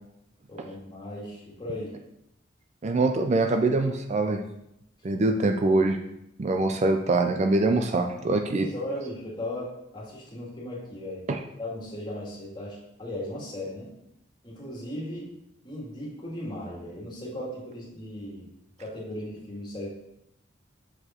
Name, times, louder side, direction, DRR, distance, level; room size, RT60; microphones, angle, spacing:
voice 1, 0.5-1.9 8.5-11.3 11.6-13.9 14.4-15.3 15.6-18.5 18.8-19.9, left 1 dB, 25° left, -4 dB, 2.0 m, -37 dB
voice 2, 2.8-4.4 5.0-6.0 6.4-8.7 11.3-11.4, right 2 dB, 35° right, 5 dB, 0.4 m, -24 dB
6.6 x 4.9 x 4.3 m, 0.82 s
head